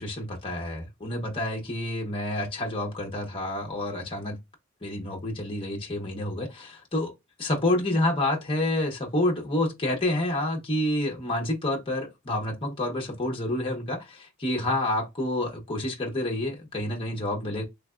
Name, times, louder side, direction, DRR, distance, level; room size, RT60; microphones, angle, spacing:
voice 1, 0.0-4.4 4.8-7.1 7.4-17.6, left 1 dB, 25° left, 0.8 m, -28 dB
3.2 x 3.2 x 2.4 m
head